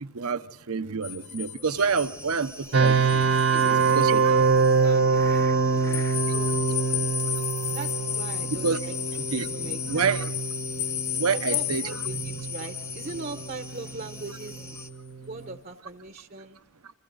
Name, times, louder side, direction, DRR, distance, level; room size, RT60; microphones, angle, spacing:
voice 1, 0.0-3.2 3.7-4.3 8.5-8.8 9.3-9.5 9.9-10.3 11.2-11.9, right 5 dB, 85° right, 0.8 m, -27 dB
sound 1, 1.0-4.2 4.6-4.7 5.9-14.9, left 11 dB, 55° left, 1.1 m, -34 dB
sound 2, 1.6-14.9, left 1 dB, 10° left, 0.8 m, -45 dB
sound 3, 2.7-15.5, right 5 dB, 65° right, 1.0 m, -25 dB
voice 2, 3.5-4.5 4.8-5.5 5.7-6.9 7.7-9.0 9.3-10.1 11.3-14.6 15.3-16.6, right 3 dB, 40° right, 0.8 m, -40 dB
28.0 x 26.5 x 4.0 m
head